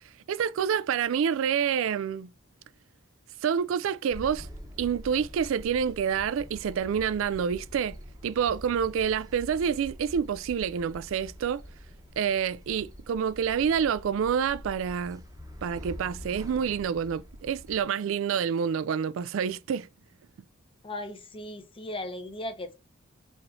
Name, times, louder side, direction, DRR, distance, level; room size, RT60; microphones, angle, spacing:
voice 1, 0.3-2.3 3.4-4.5 4.8-8.0 8.2-11.6 12.2-15.2 15.6-19.9, right 7 dB, 65° right, 0.3 m, -28 dB
sound 1, 4.1-17.8, equal, 15° right, 0.9 m, -45 dB
voice 2, 20.8-22.7, left 1 dB, 25° left, 0.8 m, -37 dB
4.7 x 3.1 x 2.6 m
head